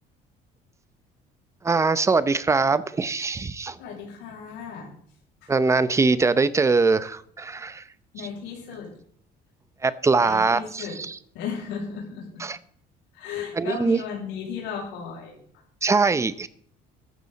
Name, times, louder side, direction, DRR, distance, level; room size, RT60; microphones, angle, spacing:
voice 1, 1.6-3.8 5.5-7.8 9.8-11.1 12.4-12.6 13.6-14.0 15.8-16.5, right 4 dB, 15° right, 0.7 m, -22 dB
voice 2, 3.8-4.9 5.4-5.5 8.1-8.9 10.2-11.0 11.3-12.4 13.1-15.4, left 6 dB, 90° left, 7.1 m, -35 dB
15.0 x 12.5 x 4.2 m
cardioid pair, 150°, 19 cm